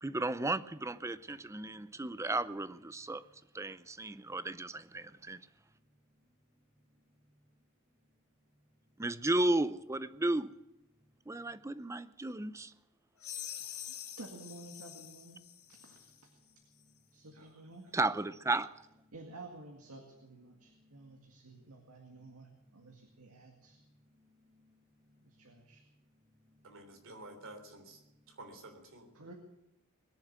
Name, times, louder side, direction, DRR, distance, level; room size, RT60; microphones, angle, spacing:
voice 1, 0.0-3.2 3.5-5.4 9.0-10.5 11.3-12.7 17.9-18.7, right 2 dB, 15° right, 0.5 m, -34 dB
sound 1, 13.2-16.2, left 10 dB, 70° left, 1.9 m, -46 dB
voice 2, 13.6-15.4 15.7-16.3 17.1-18.0 19.1-23.8 25.2-25.8 29.1-29.3, right 2 dB, 80° right, 2.0 m, -52 dB
voice 3, 26.6-28.0 28.3-29.1, right 2 dB, 65° right, 3.3 m, -50 dB
21.5 x 7.3 x 9.4 m
head